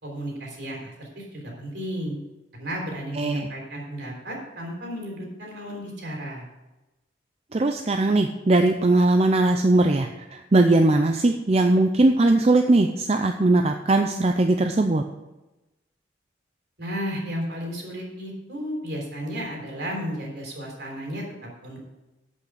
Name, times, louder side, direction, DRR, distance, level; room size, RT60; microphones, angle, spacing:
voice 1, 0.0-2.2 2.5-6.4 16.8-21.8, equal, 60° right, 0 dB, 3.6 m, -33 dB
voice 2, 3.1-3.5 7.5-15.0, right 2 dB, 30° right, 5 dB, 0.5 m, -20 dB
8.4 x 8.3 x 6.4 m, 1.0 s
head